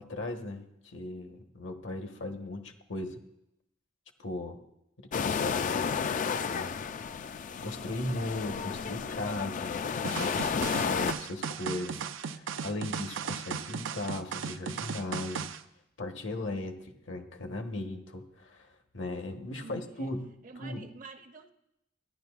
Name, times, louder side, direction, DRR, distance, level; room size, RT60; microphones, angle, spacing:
voice 1, 0.0-3.2 4.2-4.6 5.0-5.8 6.3-6.8 7.6-15.5 16.0-20.3 20.6-20.8, left 2 dB, 70° left, 4 dB, 1.2 m, -37 dB
sound 1, 5.1-11.1, left 6 dB, 40° left, 0.3 m, -32 dB
sound 2, 10.0-15.6, right 6 dB, 85° right, 0.5 m, -36 dB
voice 2, 19.6-20.1 20.4-21.5, right 4 dB, 45° right, 7 dB, 0.6 m, -48 dB
14.5 x 10.5 x 2.4 m, 0.83 s
head